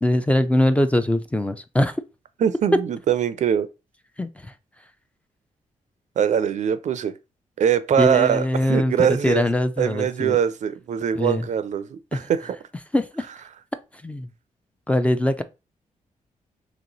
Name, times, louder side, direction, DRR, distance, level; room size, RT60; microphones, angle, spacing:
voice 1, 0.0-2.0 4.2-4.5 8.0-10.4 11.2-11.5 12.9-13.2 14.0-14.3 14.9-15.4, left 1 dB, 10° left, 0.4 m, -22 dB
voice 2, 2.4-3.7 6.2-7.1 7.6-9.4 9.8-12.6, right 8 dB, 60° right, 0.4 m, -22 dB
3.1 x 3.0 x 3.9 m
cardioid pair, 100°, 14 cm